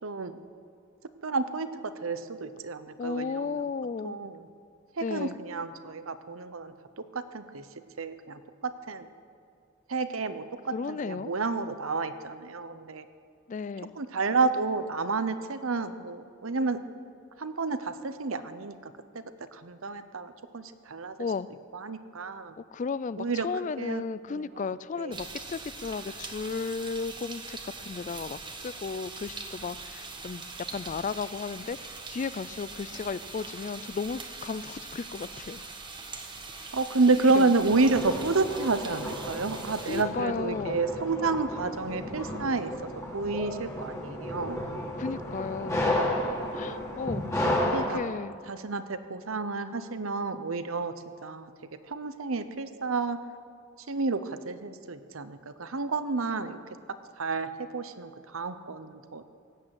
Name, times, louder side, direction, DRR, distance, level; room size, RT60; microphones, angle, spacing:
voice 1, 0.0-0.4 1.2-1.7 2.0-3.6 4.0-4.4 5.0-7.7 8.0-9.1 9.9-13.0 14.0-16.8 17.4-19.2 19.5-21.2 21.7-22.6 23.2-23.5 23.8-24.0 24.3-24.6 25.0-25.2 36.7-42.7 43.1-44.6 47.7-48.0 48.5-50.9 51.2-51.5 51.9-53.2 53.9-56.6 57.2-59.2, right 3 dB, 80° right, 11 dB, 0.9 m, -30 dB
voice 2, 3.0-4.2 5.0-5.4 10.7-11.3 13.5-13.9 21.2-21.5 22.6-35.6 37.1-37.5 39.8-40.8 45.0-45.9 46.5-47.2 47.9-48.4, left 5 dB, 35° left, 17 dB, 0.3 m, -34 dB
sound 1, 25.1-40.0, right 4 dB, 20° right, 1.2 m, -42 dB
sound 2, 37.7-47.9, left 1 dB, 15° left, 2.3 m, -33 dB
17.5 x 8.9 x 7.8 m, 2.3 s
head